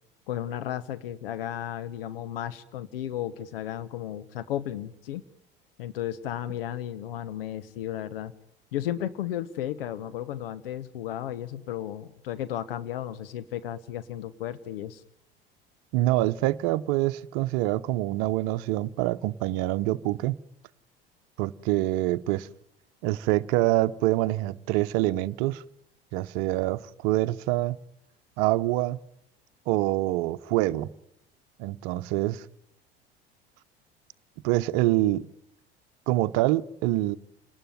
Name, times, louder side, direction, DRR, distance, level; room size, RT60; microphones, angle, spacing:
voice 1, 0.3-5.2 5.8-8.3 8.7-15.0, left 11 dB, 70° left, 13 dB, 1.2 m, -34 dB
voice 2, 15.9-20.3 21.4-22.5 23.0-25.6 26.1-27.8 28.4-29.0 29.7-30.9 31.6-32.4 34.4-35.2 36.1-37.2, right 16 dB, 55° right, 14 dB, 0.9 m, -25 dB
28.0 x 19.5 x 9.4 m, 0.80 s
figure-of-eight pair, 70°, 30 cm